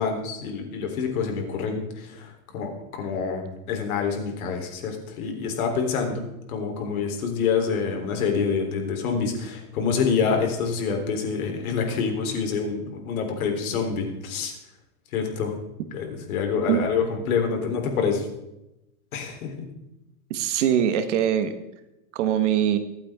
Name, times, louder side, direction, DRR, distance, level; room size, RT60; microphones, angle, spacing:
voice 1, 0.0-6.2 6.5-14.5 15.1-15.5 15.9-18.3 19.1-19.7, left 5 dB, 70° left, 3 dB, 3.8 m, -27 dB
voice 2, 20.3-21.6 22.1-22.8, right 10 dB, 50° right, 9 dB, 1.5 m, -22 dB
25.0 x 8.7 x 3.7 m, 0.91 s
supercardioid pair, 170°, 44 cm